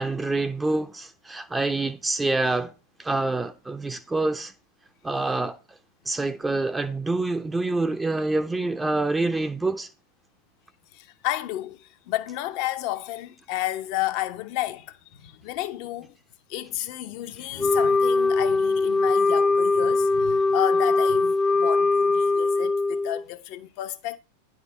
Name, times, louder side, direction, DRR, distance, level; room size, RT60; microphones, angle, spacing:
voice 1, 0.0-2.7 3.0-4.5 5.0-5.6 6.1-9.9, right 2 dB, 10° right, 0.7 m, -26 dB
voice 2, 10.9-16.2 16.5-24.2, left 15 dB, 45° left, 0.8 m, -31 dB
Wind instrument woodwind instrument, 17.6-23.2, left 3 dB, 10° left, 0.3 m, -21 dB
10.0 x 3.8 x 7.2 m
figure-of-eight pair, 90°, 0 cm